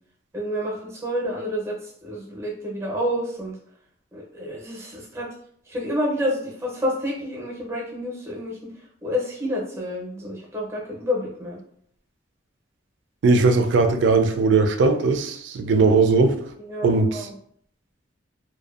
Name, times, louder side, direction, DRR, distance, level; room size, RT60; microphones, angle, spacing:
voice 1, 0.3-3.6 4.1-5.3 5.7-8.6 9.0-11.6 16.6-17.3, equal, 15° right, -3 dB, 0.6 m, -29 dB
voice 2, 13.2-16.3 16.8-17.3, right 3 dB, 70° right, 7 dB, 0.3 m, -19 dB
2.5 x 2.1 x 2.3 m, 0.64 s
head